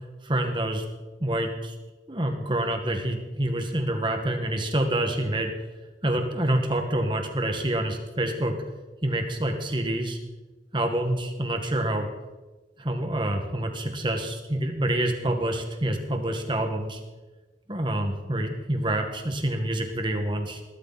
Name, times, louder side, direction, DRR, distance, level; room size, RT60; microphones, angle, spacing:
voice 1, 0.2-0.8 1.2-1.8 2.1-5.5 6.0-8.6 9.0-10.2 10.7-12.1 12.8-17.0 17.7-20.6, right 1 dB, 25° right, 4 dB, 1.8 m, -27 dB
20.0 x 13.0 x 4.2 m, 1.2 s
head